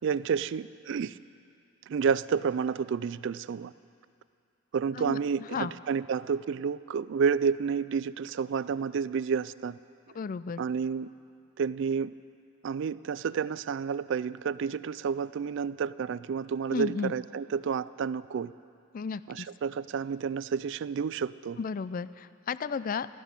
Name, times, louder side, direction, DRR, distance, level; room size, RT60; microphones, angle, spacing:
voice 1, 0.0-1.2 1.9-3.7 4.7-9.8 10.6-11.1 11.6-12.1 12.6-18.5 19.3-21.6, right 6 dB, 60° right, 17 dB, 0.3 m, -30 dB
voice 2, 10.1-10.6 16.7-17.1 18.9-19.5 21.6-23.1, left 5 dB, 40° left, 15 dB, 0.4 m, -33 dB
15.5 x 12.0 x 7.3 m, 2.4 s
head